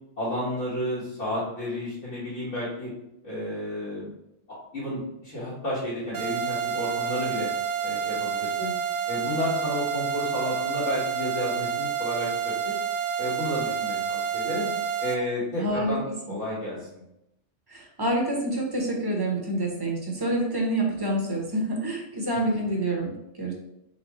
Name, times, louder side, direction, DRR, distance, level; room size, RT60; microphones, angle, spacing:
voice 1, 0.2-2.9 3.2-4.1 4.7-7.5 7.8-8.7 9.1-12.8 13.2-14.7 15.0-17.0, left 1 dB, 80° left, -12 dB, 2.0 m, -31 dB
sound 1, 6.1-15.2, right 7 dB, 60° right, 0.6 m, -29 dB
voice 2, 15.6-16.0 17.7-23.5, right 1 dB, 20° right, -1 dB, 0.8 m, -27 dB
4.1 x 3.6 x 3.0 m, 0.85 s
omnidirectional pair, 1.2 m